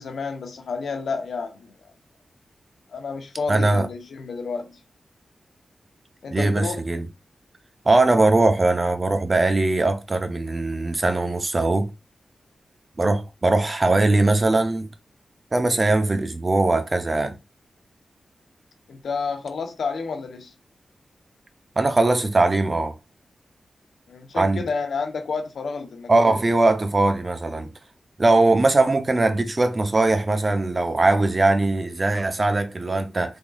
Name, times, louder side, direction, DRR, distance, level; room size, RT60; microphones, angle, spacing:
voice 1, 0.0-1.7 2.9-4.8 6.2-6.8 18.9-20.5 24.1-26.4, left 4 dB, 85° left, 0.8 m, -30 dB
voice 2, 3.5-3.9 6.3-7.1 7.8-11.9 13.0-14.9 15.5-17.4 21.8-22.9 24.3-24.6 26.1-27.7 28.2-33.4, right 2 dB, 35° right, 0.6 m, -20 dB
3.6 x 3.6 x 2.3 m
cardioid pair, 65°, 0 cm